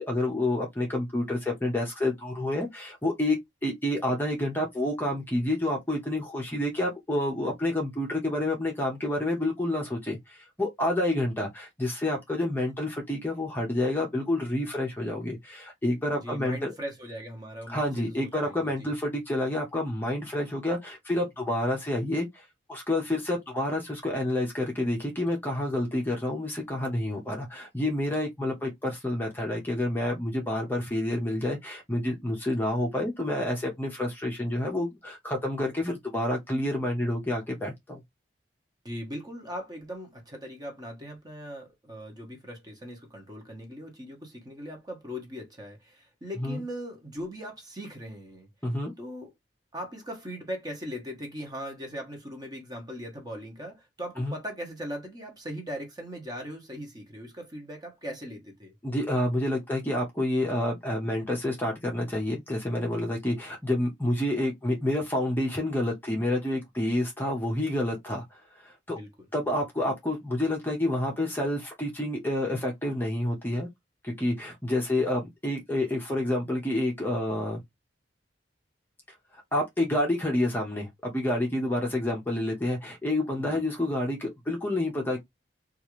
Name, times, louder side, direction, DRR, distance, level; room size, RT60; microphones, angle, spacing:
voice 1, 0.0-16.7 17.7-22.4 22.7-38.0 46.4-46.6 48.6-48.9 54.2-54.4 58.8-69.0 69.3-73.7 74.0-77.6 79.5-85.2, left 1 dB, 10° left, 0.7 m, -29 dB
voice 2, 16.2-18.9 38.8-48.5 49.0-49.3 49.7-58.7 68.9-69.3 83.4-83.6, equal, 20° right, 1.0 m, -39 dB
2.8 x 2.4 x 3.0 m
head